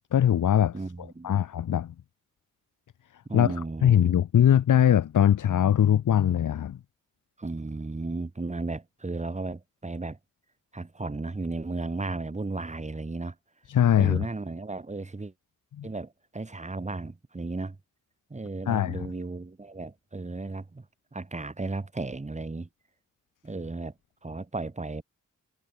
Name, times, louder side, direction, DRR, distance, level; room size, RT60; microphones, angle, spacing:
voice 1, 0.1-0.8 1.2-1.9 3.3-6.8 13.7-14.3 15.8-15.9 18.7-19.1, left 10 dB, 85° left, 3.9 m, -22 dB
voice 2, 0.7-1.3 3.3-4.0 7.4-10.2 10.7-13.3 14.0-15.3 15.8-17.8 18.3-20.9 21.1-22.7 23.4-23.9 24.2-25.0, right 3 dB, 25° right, 3.7 m, -34 dB
cardioid pair, 95°, 30 cm